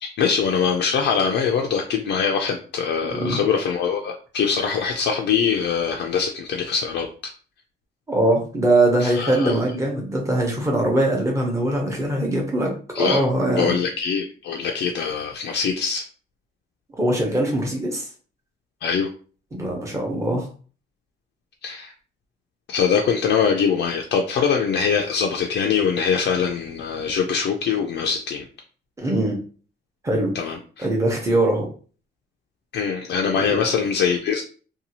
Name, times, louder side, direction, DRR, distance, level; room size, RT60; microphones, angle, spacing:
voice 1, 0.0-7.3 9.0-9.6 12.9-13.2 13.6-16.0 18.8-19.1 21.6-21.9 22.7-28.4 30.3-30.9 32.7-34.4, left 6 dB, 65° left, 1 dB, 0.4 m, -23 dB
voice 2, 8.1-13.8 16.9-18.1 19.5-20.5 29.0-29.4 30.0-30.3 30.8-31.7 33.4-33.7, right 1 dB, 15° right, 0 dB, 0.8 m, -22 dB
2.6 x 2.3 x 2.8 m, 0.40 s
cardioid pair, 135°, 19 cm